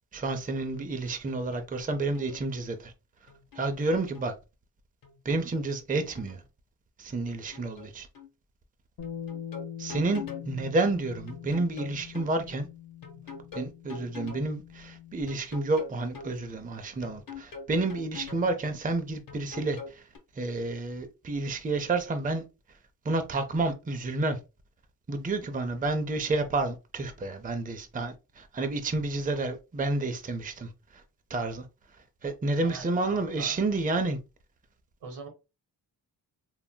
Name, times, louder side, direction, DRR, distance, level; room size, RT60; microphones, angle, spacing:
voice 1, 0.1-2.9 3.6-4.3 5.2-6.4 7.0-8.1 9.8-12.7 13.5-20.0 20.4-22.4 23.1-24.4 25.1-30.7 31.3-31.6 32.2-34.2, right 2 dB, 20° right, 0.5 m, -30 dB
sound 1, 1.0-1.6 1.9-2.5 3.3-4.3 5.0-6.5 7.3-7.9 8.1-8.3 9.0-10.5 11.3-12.3 13.0-14.5 15.3-16.3 17.0-18.5 19.3-20.2, left 5 dB, 55° left, 1.1 m, -43 dB
Bass guitar, 9.0-15.2, left 9 dB, 75° left, 0.8 m, -43 dB
voice 2, 32.6-33.6 35.0-35.3, right 4 dB, 85° right, 1.3 m, -43 dB
3.7 x 2.1 x 2.2 m
cardioid pair, 55°, 41 cm